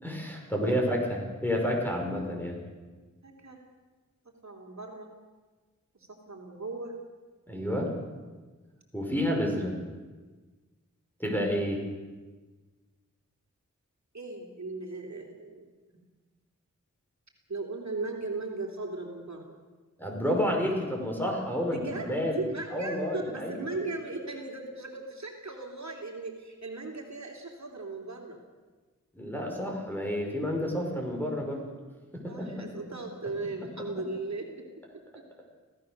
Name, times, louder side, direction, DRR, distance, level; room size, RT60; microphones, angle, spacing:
voice 1, 0.0-2.6 7.5-7.9 8.9-9.8 11.2-11.8 20.0-22.3 22.7-23.7 29.2-31.6 32.1-33.0 33.8-33.9, equal, 5° left, 0 dB, 5.7 m, -30 dB
voice 2, 3.2-3.6 4.2-5.1 5.9-7.0 14.1-15.7 17.5-19.6 21.7-28.4 32.3-34.7 34.9-35.2, right 3 dB, 60° right, 1 dB, 3.0 m, -37 dB
25.0 x 16.5 x 6.7 m, 1.3 s
wide cardioid pair, 65°, 31 cm